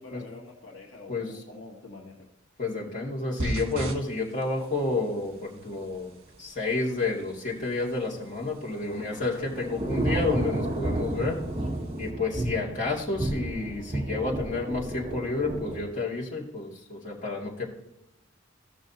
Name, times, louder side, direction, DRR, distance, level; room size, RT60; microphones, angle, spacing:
voice 1, 0.0-2.3 8.8-9.1, left 3 dB, 75° left, -1 dB, 1.6 m, -46 dB
voice 2, 1.1-1.4 2.6-6.1 6.4-11.4 12.0-17.6, left 3 dB, 40° left, -5 dB, 2.5 m, -30 dB
sound 1, 3.4-12.1, right 1 dB, 80° right, 1.7 m, -41 dB
Thunder / Rain, 8.5-15.8, right 1 dB, 30° right, 1.3 m, -32 dB
15.0 x 6.2 x 2.9 m, 0.90 s
head